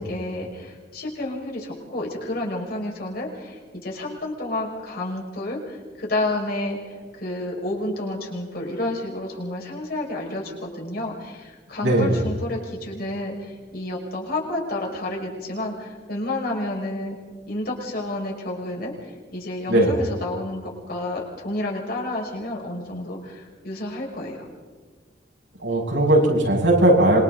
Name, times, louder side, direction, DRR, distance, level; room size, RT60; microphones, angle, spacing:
voice 1, 0.0-17.2 17.5-24.5, left 1 dB, 55° left, -1 dB, 5.8 m, -30 dB
voice 2, 11.8-12.2 19.7-19.9 25.6-27.2, right 1 dB, 90° right, -2 dB, 6.6 m, -18 dB
27.0 x 24.0 x 4.1 m, 1.4 s
head